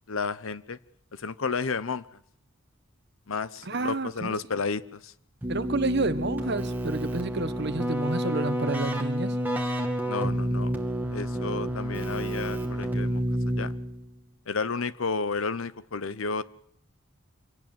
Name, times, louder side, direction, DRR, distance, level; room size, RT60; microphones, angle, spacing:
voice 1, 0.1-0.8 1.2-2.0 3.3-5.1 10.1-10.7 11.1-13.2 13.6-13.7 14.5-16.4, left 4 dB, 75° left, 0.8 m, -31 dB
voice 2, 3.6-4.3 5.5-9.3, right 3 dB, 55° right, 1.1 m, -30 dB
Keyboard (musical), 5.4-14.1, equal, 10° right, 2.2 m, -29 dB
24.5 x 17.5 x 7.8 m
head